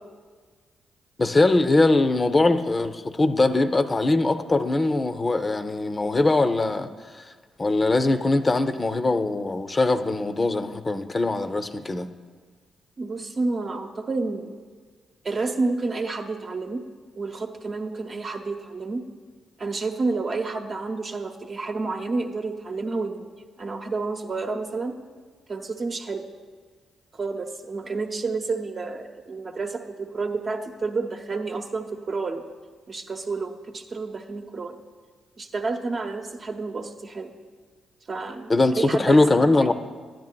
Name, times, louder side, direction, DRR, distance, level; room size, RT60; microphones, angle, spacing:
voice 1, 1.2-6.9 7.6-12.1 38.5-39.7, left 2 dB, 35° left, 8 dB, 0.4 m, -21 dB
voice 2, 13.0-14.6 15.2-16.8 17.2-19.0 19.6-23.3 23.6-25.0 25.5-26.3 27.1-32.4 32.9-34.8 35.4-37.3 38.1-39.3, right 3 dB, 45° right, 4 dB, 0.7 m, -30 dB
10.5 x 9.4 x 2.2 m, 1.5 s
hypercardioid pair, 45°, 0 cm